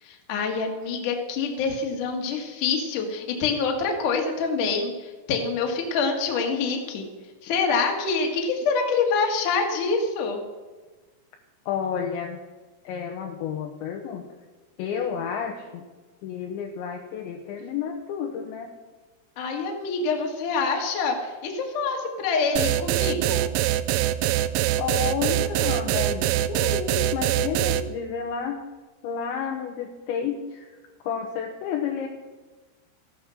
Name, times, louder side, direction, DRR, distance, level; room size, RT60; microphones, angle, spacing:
voice 1, 0.0-7.1 7.4-10.4 19.4-23.4, left 4 dB, 55° left, 2 dB, 2.6 m, -26 dB
voice 2, 11.7-12.4 12.8-14.3 14.8-15.9 16.2-18.7 24.8-28.6 29.0-30.8 31.0-32.1, left 7 dB, 75° left, 3 dB, 2.9 m, -31 dB
sound 1, 22.6-27.8, right 14 dB, 85° right, 2.8 m, -23 dB
15.5 x 11.0 x 6.5 m, 1.3 s
omnidirectional pair, 6.0 m